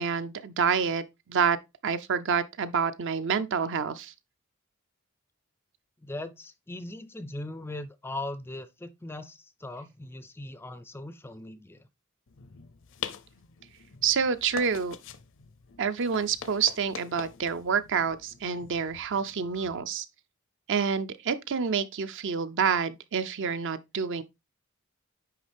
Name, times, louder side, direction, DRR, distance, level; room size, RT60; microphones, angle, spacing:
voice 1, 0.0-1.6 1.8-4.1 14.0-15.0 15.8-20.1 20.7-24.2, right 6 dB, 55° right, 0.5 m, -28 dB
voice 2, 6.0-11.9, left 2 dB, 10° left, 0.4 m, -39 dB
sound 1, 12.3-19.8, left 7 dB, 60° left, 0.6 m, -44 dB
9.5 x 3.2 x 3.4 m
head